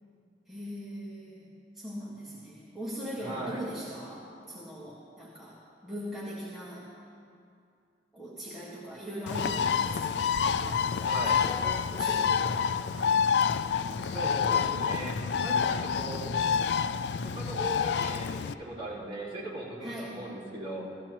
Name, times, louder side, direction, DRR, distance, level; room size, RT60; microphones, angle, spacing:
voice 1, 0.5-1.5 1.7-5.6 5.8-6.9 8.1-11.6 11.9-12.8 19.8-20.1, equal, ahead, -9 dB, 1.6 m, -40 dB
voice 2, 3.2-3.6 11.0-11.4 14.1-16.3 17.2-21.0, right 1 dB, 30° right, -8 dB, 3.9 m, -38 dB
Bird, 9.3-18.5, left 6 dB, 75° left, 0.4 m, -28 dB
sound 1, 11.5-13.2, left 2 dB, 15° left, 0.5 m, -44 dB
17.0 x 15.0 x 3.0 m, 2.4 s
head